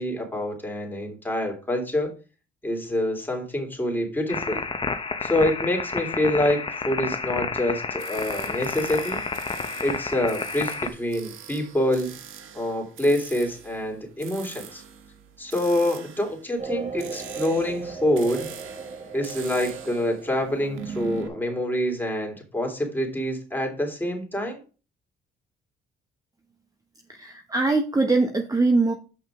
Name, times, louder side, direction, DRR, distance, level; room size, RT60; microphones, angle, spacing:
voice 1, 0.0-2.1 2.6-4.6 5.2-9.2 9.8-12.1 12.5-14.8 15.4-18.5 19.1-24.6, left 1 dB, 10° left, 2 dB, 3.2 m, -26 dB
sound 1, 4.3-10.9, left 4 dB, 25° left, 1.0 m, -30 dB
sound 2, 8.0-21.3, right 7 dB, 85° right, 1.5 m, -42 dB
sound 3, 16.6-21.8, right 5 dB, 35° right, 2.8 m, -37 dB
voice 2, 27.1-28.9, right 3 dB, 20° right, 3 dB, 1.2 m, -22 dB
8.0 x 5.6 x 4.9 m, 0.34 s
cardioid pair, 90°, 20 cm